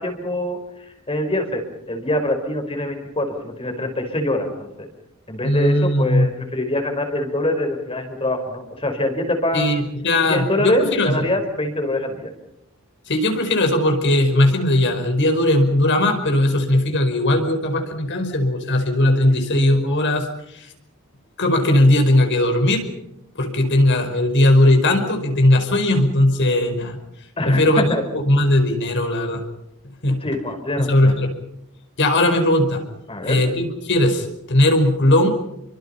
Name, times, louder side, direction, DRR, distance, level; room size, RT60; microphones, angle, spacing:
voice 1, 0.0-4.7 5.3-9.7 10.3-12.3 27.4-28.0 30.1-31.1 33.1-33.4, left 1 dB, 25° left, 5 dB, 5.0 m, -24 dB
voice 2, 5.4-6.3 9.5-11.1 13.1-20.7 21.4-22.8 23.4-27.0 27.4-27.9 28.2-29.4 30.0-30.2 30.8-31.4 32.0-32.8 33.3-35.3, left 1 dB, 55° left, 5 dB, 5.1 m, -18 dB
30.0 x 24.5 x 5.7 m, 0.81 s
head